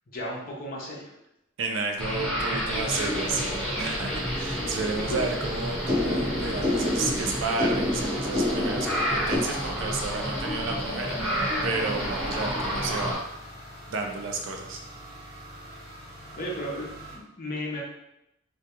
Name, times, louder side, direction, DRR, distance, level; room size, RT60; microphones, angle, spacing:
voice 1, 0.1-1.1 5.1-5.2 16.4-17.8, equal, 45° left, -3 dB, 0.6 m, -34 dB
voice 2, 1.6-13.2 13.9-14.8, right 3 dB, 70° right, 3 dB, 0.4 m, -32 dB
sound 1, 2.0-13.1, equal, 5° left, 0.8 m, -30 dB
sound 2, 2.7-17.2, equal, 55° right, 0.8 m, -44 dB
sound 3, 2.9-9.4, left 2 dB, 25° right, 0.9 m, -31 dB
2.2 x 2.2 x 2.8 m, 0.85 s
head